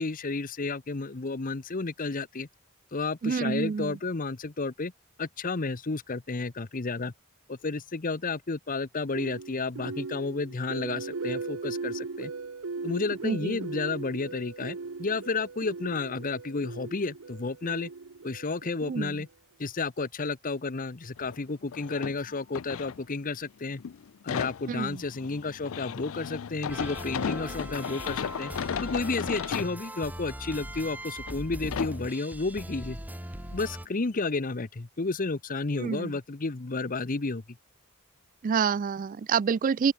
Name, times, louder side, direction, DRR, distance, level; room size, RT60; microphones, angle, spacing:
voice 1, 0.0-2.5 2.9-4.9 5.2-7.1 7.5-12.3 12.8-17.9 18.2-19.3 19.6-23.8 24.2-28.5 28.8-33.0 33.5-37.4, left 3 dB, 40° left, 0.8 m, -32 dB
voice 2, 3.2-4.0 13.2-13.6 18.9-19.2 24.7-25.0 35.8-36.1 38.4-39.9, right 6 dB, 40° right, 0.3 m, -28 dB
sound 1, 9.1-19.2, right 4 dB, 80° right, 0.9 m, -38 dB
sound 2, 21.2-21.4 21.7-23.4 23.8-29.8 30.4-30.5 31.2-31.4 31.6-32.0 33.7-33.8 34.1-34.2, left 7 dB, 70° left, 0.4 m, -35 dB
sound 3, 26.7-33.9, right 1 dB, 10° right, 1.4 m, -40 dB
open air
head